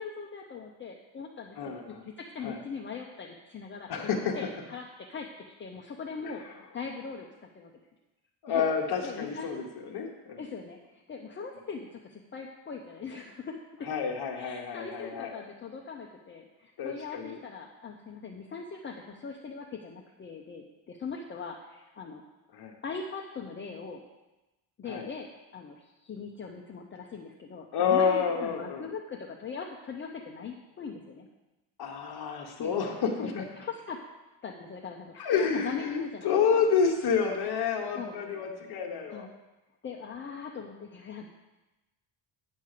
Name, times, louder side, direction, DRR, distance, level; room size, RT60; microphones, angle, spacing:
voice 1, 0.0-1.8 2.2-3.9 4.4-5.3 5.6-6.4 6.7-7.3 7.5-7.7 8.5-8.6 9.0-9.5 10.4-13.9 14.3-22.2 22.8-24.0 24.8-31.3 32.3-32.7 33.2-34.0 34.4-36.4 37.9-38.2 39.1-39.3 39.8-41.3, left 5 dB, 25° left, 0 dB, 0.6 m, -40 dB
voice 2, 1.6-2.0 2.4-2.6 3.9-4.4 8.4-10.4 13.8-15.4 16.8-17.4 22.5-22.7 24.9-25.1 27.7-28.9 31.8-33.4 35.2-39.3, left 6 dB, 50° left, 2 dB, 1.1 m, -29 dB
9.6 x 5.3 x 6.5 m, 1.0 s
cardioid pair, 160°, 49 cm